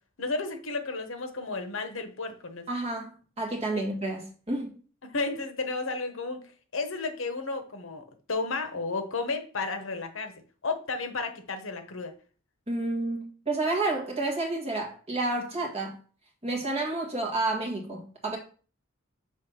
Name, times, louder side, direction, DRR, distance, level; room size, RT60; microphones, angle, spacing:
voice 1, 0.2-2.7 5.0-6.4 6.7-10.3 10.6-12.1, left 3 dB, 70° left, 0.9 m, -32 dB
voice 2, 2.7-4.7 12.7-16.0 16.4-18.4, right 2 dB, 30° right, 1.5 m, -30 dB
6.5 x 3.1 x 5.5 m
head